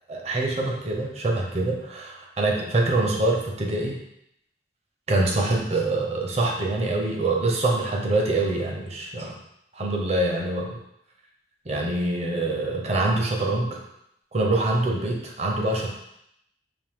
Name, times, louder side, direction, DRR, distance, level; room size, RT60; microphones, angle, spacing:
voice 1, 0.1-4.0 5.1-9.4 9.7-10.8 11.7-13.8 14.3-15.9, right 2 dB, 40° right, 0 dB, 0.7 m, -25 dB
5.3 x 2.7 x 3.6 m, 0.78 s
head